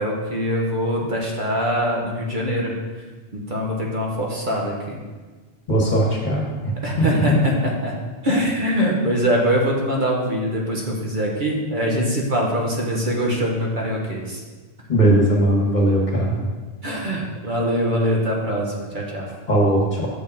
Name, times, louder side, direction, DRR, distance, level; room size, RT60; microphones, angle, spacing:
voice 1, 0.0-2.7 3.3-5.0 6.8-7.9 8.2-14.4 16.8-19.3, equal, 50° right, -2 dB, 1.3 m, -23 dB
voice 2, 5.7-6.5 14.9-16.4 19.5-20.1, right 1 dB, 45° left, -2 dB, 1.5 m, -18 dB
6.4 x 5.3 x 5.4 m, 1.4 s
omnidirectional pair, 1.0 m